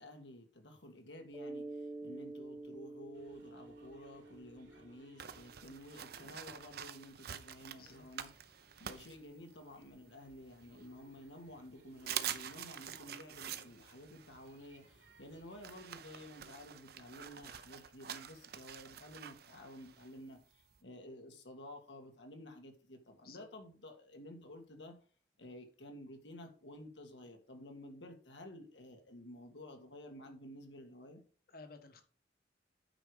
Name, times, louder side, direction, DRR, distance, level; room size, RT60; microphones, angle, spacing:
voice 1, 0.0-8.3 8.8-20.4 20.8-25.0 25.4-31.2, left 1 dB, 85° left, 1.8 m, -52 dB
Mallet percussion, 1.3-5.8, right 2 dB, 10° right, 0.7 m, -48 dB
sound 1, 3.1-15.8, right 2 dB, 85° right, 2.9 m, -66 dB
sound 2, 5.2-9.8 10.3-11.2 11.6-11.7 12.0-20.8, right 10 dB, 60° right, 0.7 m, -46 dB
voice 2, 31.5-32.0, left 3 dB, 60° left, 1.3 m, -54 dB
9.0 x 4.8 x 4.9 m
head